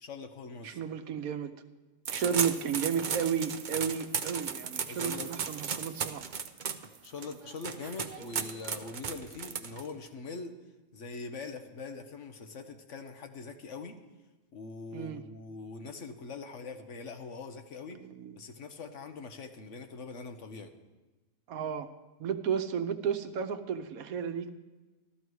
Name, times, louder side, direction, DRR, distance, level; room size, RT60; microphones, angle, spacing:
voice 1, 0.0-0.8 2.2-2.4 4.9-5.3 7.0-10.6 10.9-14.0 14.5-18.0 18.3-20.7, left 4 dB, 60° left, 6 dB, 1.3 m, -43 dB
voice 2, 0.6-1.5 2.1-6.2 14.9-15.2 17.9-18.4 21.5-21.9 22.2-24.5, right 7 dB, 85° right, 9 dB, 1.3 m, -33 dB
sound 1, 2.0-10.1, right 6 dB, 50° right, 0.6 m, -35 dB
13.5 x 13.0 x 4.7 m, 1.2 s
omnidirectional pair, 1.5 m